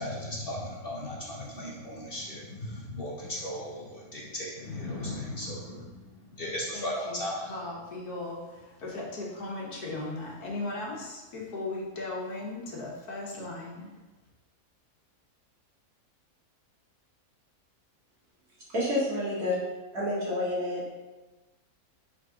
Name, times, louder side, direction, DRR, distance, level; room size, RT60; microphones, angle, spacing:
voice 1, 0.0-7.5, left 1 dB, 45° left, -3 dB, 0.9 m, -36 dB
voice 2, 6.7-7.2 7.5-13.9, left 2 dB, 80° left, -3 dB, 1.7 m, -37 dB
voice 3, 18.7-19.6 19.9-20.8, left 1 dB, 65° right, -8 dB, 2.5 m, -28 dB
4.9 x 4.1 x 4.7 m, 1.2 s
omnidirectional pair, 1.6 m